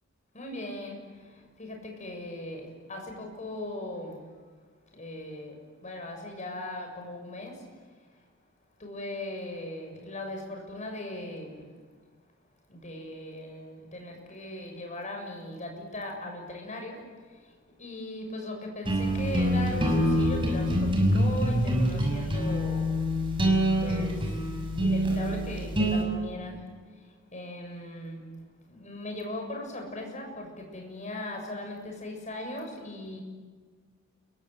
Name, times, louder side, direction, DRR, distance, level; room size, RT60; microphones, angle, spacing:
voice 1, 0.3-1.0 1.6-4.1 5.0-5.5 5.8-7.5 8.8-11.7 12.7-17.0 17.8-23.0 23.8-24.1 24.8-26.6 27.3-28.3 28.7-33.2, left 1 dB, 35° left, 3 dB, 7.0 m, -38 dB
sound 1, 18.8-26.0, equal, 25° right, 6.5 m, -25 dB
30.0 x 23.5 x 8.3 m, 1.5 s
head